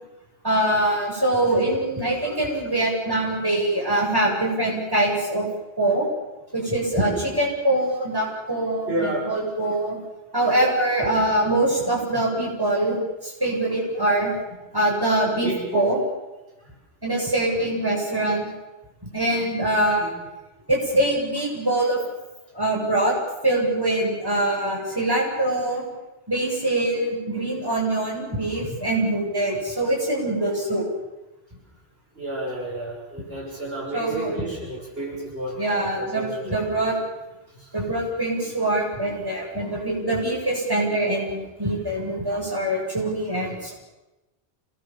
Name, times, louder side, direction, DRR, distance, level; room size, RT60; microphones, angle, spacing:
voice 1, 0.4-5.5 5.8-6.1 6.5-10.0 10.3-14.3 14.7-16.0 17.0-18.5 19.1-20.1 20.7-22.0 22.5-23.1 23.4-25.8 26.3-30.8 33.9-34.5 35.6-37.0 37.7-43.7, right 1 dB, 20° right, -3 dB, 7.7 m, -23 dB
voice 2, 8.9-9.3 15.4-15.9 20.0-20.1 32.2-35.6 36.0-36.5 37.5-37.7, right 2 dB, 55° right, -3 dB, 6.5 m, -31 dB
28.0 x 20.0 x 7.5 m, 1.0 s
omnidirectional pair, 1.2 m